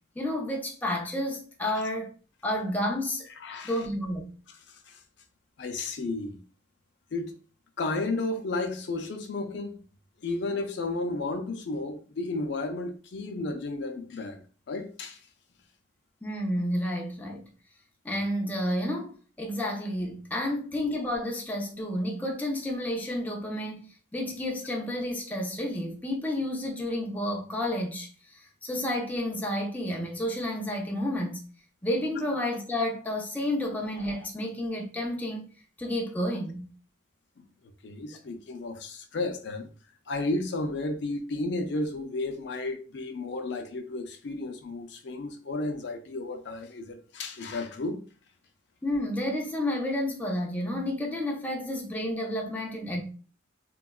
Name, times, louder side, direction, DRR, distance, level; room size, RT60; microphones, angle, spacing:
voice 1, 0.2-2.1 2.4-3.2 3.6-4.3 16.2-17.4 18.0-23.9 24.1-31.4 31.8-35.5 35.8-36.7 48.8-53.0, left 1 dB, 10° left, 0.4 m, -30 dB
voice 2, 3.4-3.7 4.5-5.0 5.6-6.4 7.1-7.4 7.8-9.8 10.2-14.4 14.7-15.2 37.4-37.5 37.8-39.7 40.1-48.0, left 2 dB, 65° left, 0.4 m, -33 dB
3.8 x 2.2 x 2.2 m
head